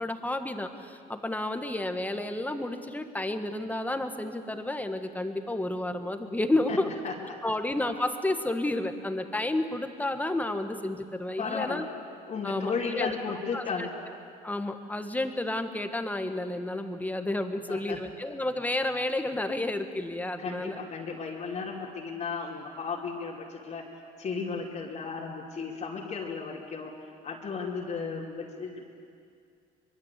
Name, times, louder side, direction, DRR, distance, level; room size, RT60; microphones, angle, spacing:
voice 1, 0.0-6.9 7.4-11.8 12.4-13.1 13.5-13.9 14.4-20.8, left 1 dB, 10° left, 7 dB, 1.7 m, -31 dB
voice 2, 11.4-11.9 12.3-13.9 17.7-18.0 20.4-23.9 24.2-28.8, left 5 dB, 45° left, -4 dB, 2.9 m, -34 dB
24.5 x 22.0 x 8.5 m, 2.3 s
cardioid pair, 110°, 17 cm